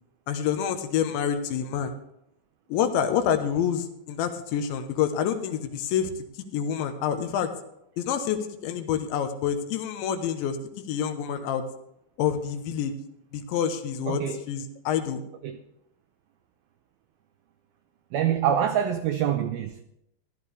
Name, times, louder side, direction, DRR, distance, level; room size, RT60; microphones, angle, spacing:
voice 1, 0.3-1.9 2.7-6.1 6.5-7.5 8.0-10.6 10.9-11.6 12.2-12.9 13.3-15.2, left 8 dB, 85° left, 3.3 m, -27 dB
voice 2, 14.1-14.4 15.4-15.6 18.1-19.8, right 9 dB, 85° right, 2.1 m, -25 dB
16.0 x 12.0 x 3.4 m
omnidirectional pair, 5.2 m